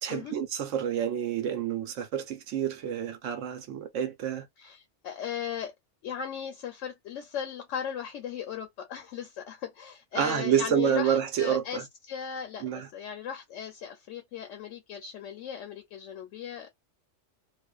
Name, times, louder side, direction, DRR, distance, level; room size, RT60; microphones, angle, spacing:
voice 1, 0.0-4.5 10.1-11.8 12.6-12.9, right 9 dB, 85° right, 1.0 m, -28 dB
voice 2, 4.6-5.7 6.0-16.7, left 8 dB, 80° left, 0.9 m, -37 dB
2.5 x 2.1 x 2.3 m
omnidirectional pair, 1.3 m